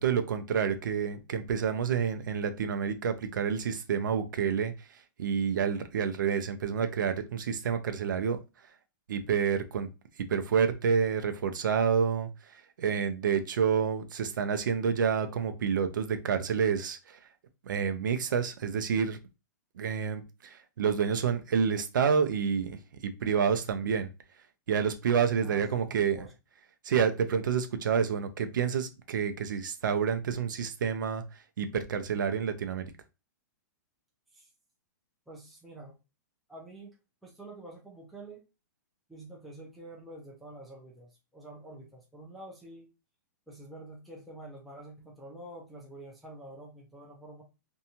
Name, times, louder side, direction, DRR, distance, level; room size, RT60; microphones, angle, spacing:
voice 1, 0.0-4.7 5.2-8.4 9.1-9.9 10.3-12.3 12.8-17.2 17.7-19.2 19.8-24.1 24.7-26.2 26.8-31.2 31.6-32.9, right 7 dB, 85° right, 8 dB, 0.5 m, -28 dB
voice 2, 25.4-26.3 34.3-34.5 35.3-36.0 36.5-36.9 37.2-38.4 39.1-42.9 43.5-47.4, right 1 dB, ahead, -3 dB, 0.4 m, -47 dB
2.6 x 2.2 x 2.7 m, 0.27 s
hypercardioid pair, 165°, 10 cm